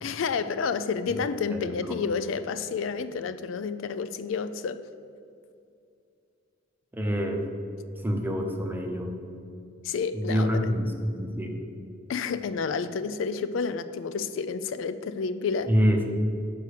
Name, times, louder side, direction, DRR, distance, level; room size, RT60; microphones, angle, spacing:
voice 1, 0.0-4.8 9.8-10.7 12.1-15.7, left 5 dB, 70° left, 12 dB, 0.4 m, -30 dB
voice 2, 1.5-2.1 6.9-7.4 8.0-9.1 10.1-11.6 15.7-16.0, equal, 10° right, 2 dB, 0.8 m, -27 dB
6.6 x 5.4 x 6.6 m, 2.5 s
head